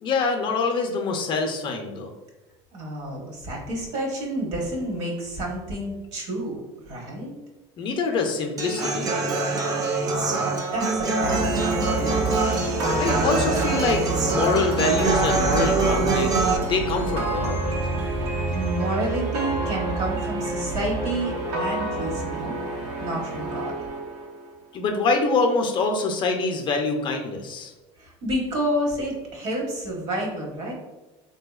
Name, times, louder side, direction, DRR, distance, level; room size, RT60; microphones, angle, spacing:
voice 1, 0.0-2.1 7.8-9.1 13.0-17.6 24.7-27.7, left 3 dB, 35° left, 3 dB, 0.4 m, -25 dB
voice 2, 2.7-7.4 10.0-12.2 18.5-22.6 23.0-23.9 28.0-30.7, right 1 dB, 60° right, -1 dB, 1.1 m, -30 dB
Human voice / Acoustic guitar, 8.6-16.6, right 3 dB, 30° right, 0.4 m, -24 dB
sound 1, 11.2-24.5, right 2 dB, 85° right, 0.8 m, -28 dB
3.6 x 2.7 x 2.3 m, 1.1 s
cardioid pair, 135°, 13 cm